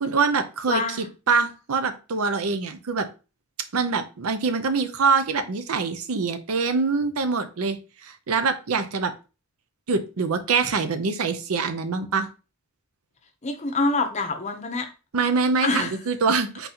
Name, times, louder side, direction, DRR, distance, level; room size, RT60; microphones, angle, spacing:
voice 1, 0.0-3.1 3.7-9.1 9.9-12.3 15.1-16.7, right 4 dB, 80° right, 0.6 m, -24 dB
voice 2, 0.7-1.1 13.4-14.9 15.6-15.9, left 3 dB, 30° left, 0.7 m, -25 dB
4.0 x 3.8 x 2.8 m
head